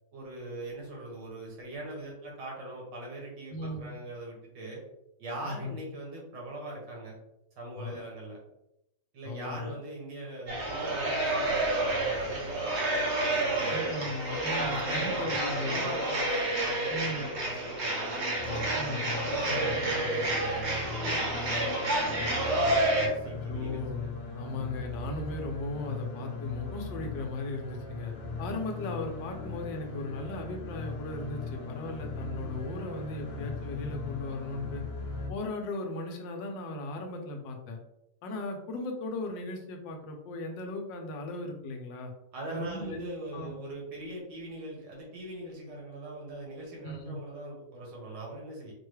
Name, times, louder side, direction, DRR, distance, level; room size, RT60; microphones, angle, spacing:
voice 1, 0.1-4.8 5.2-7.2 7.6-8.4 9.1-13.8 14.6-18.7 19.3-24.1 42.3-48.7, right 1 dB, 75° right, -2 dB, 1.9 m, -41 dB
voice 2, 3.5-3.9 5.4-5.8 7.8-8.0 9.2-9.8 13.7-15.8 16.9-17.3 18.7-19.0 19.5-19.7 23.5-24.0 24.3-28.1 28.4-34.8 35.3-37.8 38.2-42.1 42.5-43.1 43.3-43.6 46.8-47.2, left 2 dB, 85° left, 3 dB, 1.4 m, -37 dB
sound 1, 10.5-23.1, right 1 dB, 45° right, 1.0 m, -29 dB
sound 2, 18.3-35.3, left 3 dB, 45° left, 0.9 m, -39 dB
4.7 x 2.2 x 3.1 m, 0.84 s
omnidirectional pair, 1.9 m